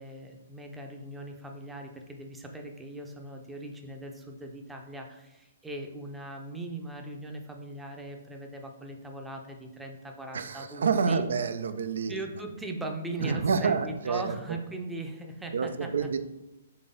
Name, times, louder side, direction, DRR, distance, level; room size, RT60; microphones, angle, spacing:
voice 1, 0.0-11.3 12.1-15.9, right 1 dB, 5° right, 2 dB, 0.6 m, -39 dB
voice 2, 10.3-12.1 13.2-14.6 15.5-16.2, right 5 dB, 65° right, 10 dB, 0.4 m, -28 dB
3.9 x 3.3 x 3.8 m, 0.99 s
figure-of-eight pair, 125°, 0 cm